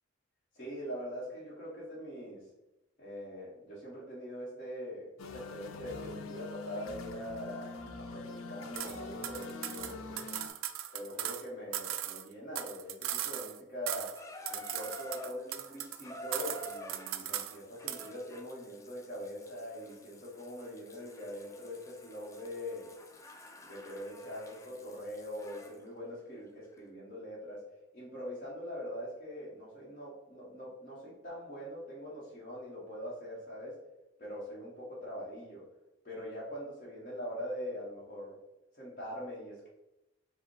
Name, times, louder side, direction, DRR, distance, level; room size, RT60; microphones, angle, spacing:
voice 1, 0.5-2.5 3.0-10.3 10.9-14.2 14.5-22.9 23.6-27.6 27.9-33.8 34.2-35.6 36.0-38.4 38.8-39.7, equal, 40° left, -7 dB, 1.1 m, -43 dB
sound 1, 5.2-10.5, left 3 dB, 90° left, 0.5 m, -44 dB
sound 2, 8.8-9.0 9.2-11.4 11.7-13.6 13.9-14.2 14.5-16.0 16.3-17.6 17.9-18.1, right 12 dB, 75° right, 0.3 m, -38 dB
Water tap faucet / Bathtub (filling or washing), 14.2-25.8 26.7-26.8, left 1 dB, 15° left, 0.3 m, -50 dB
4.7 x 2.1 x 4.7 m, 0.94 s
head